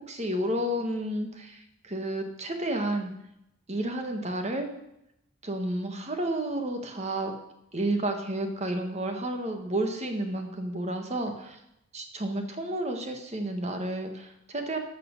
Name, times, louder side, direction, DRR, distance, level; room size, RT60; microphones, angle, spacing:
voice 1, 0.1-3.1 3.7-4.7 5.4-7.3 7.7-11.6 11.9-14.8, right 1 dB, 30° right, 5 dB, 1.5 m, -31 dB
12.5 x 6.1 x 6.5 m, 0.83 s
head